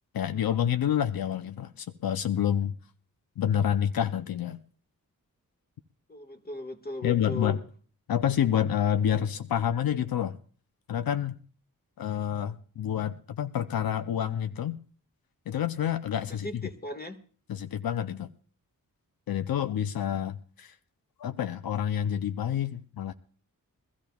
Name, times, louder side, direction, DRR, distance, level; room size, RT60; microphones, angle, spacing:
voice 1, 0.1-2.8 3.4-4.6 7.0-7.6 8.1-10.4 10.9-11.4 12.0-14.8 15.5-16.7 17.5-18.3 19.3-20.8 21.2-23.1, left 9 dB, 90° left, 0.6 m, -28 dB
voice 2, 6.1-7.6 16.3-17.1, left 2 dB, 25° left, 1.5 m, -38 dB
23.0 x 14.0 x 2.3 m
wide cardioid pair, 70°, 35 cm